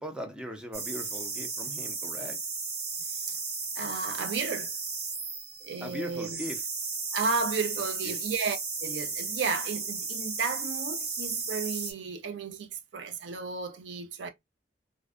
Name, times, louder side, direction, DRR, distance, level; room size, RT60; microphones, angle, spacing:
voice 1, 0.0-2.4 5.8-6.6 8.0-8.2, equal, 5° right, 0.5 m, -39 dB
sound 1, 0.7-11.9, right 4 dB, 65° right, 0.8 m, -35 dB
voice 2, 3.8-4.7 5.6-6.4 7.1-14.3, right 4 dB, 85° right, 0.5 m, -33 dB
2.5 x 2.1 x 2.4 m
head